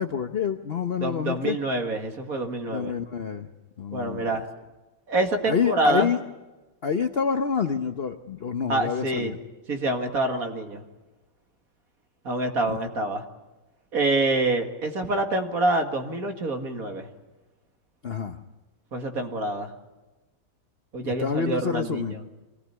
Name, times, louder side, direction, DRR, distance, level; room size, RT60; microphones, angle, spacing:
voice 1, 0.0-1.6 2.7-3.5 3.8-4.3 5.5-6.2 6.8-9.4 12.7-12.8 18.0-18.4 21.0-22.1, left 6 dB, 50° left, 8 dB, 0.7 m, -27 dB
voice 2, 1.0-3.0 3.9-4.5 5.1-6.1 8.7-9.3 9.7-10.8 12.2-13.2 13.9-17.1 18.9-19.7 20.9-22.2, right 2 dB, 45° right, 5 dB, 2.3 m, -26 dB
25.5 x 18.5 x 9.6 m, 1.1 s
omnidirectional pair, 2.2 m